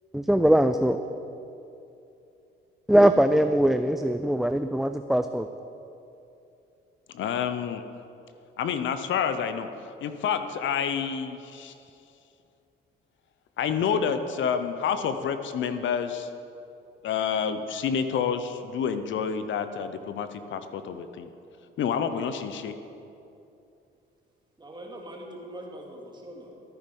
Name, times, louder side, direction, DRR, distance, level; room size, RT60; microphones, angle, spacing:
voice 1, 0.1-1.0 2.9-5.5, right 1 dB, ahead, 8 dB, 0.4 m, -21 dB
voice 2, 7.1-7.8 8.6-9.7 10.0-11.7 13.6-16.3 17.0-21.3 21.8-22.7, left 7 dB, 70° left, 10 dB, 0.8 m, -28 dB
voice 3, 24.6-26.6, right 1 dB, 20° right, -1 dB, 2.4 m, -42 dB
14.0 x 9.1 x 5.4 m, 2.7 s
cardioid pair, 90°, 20 cm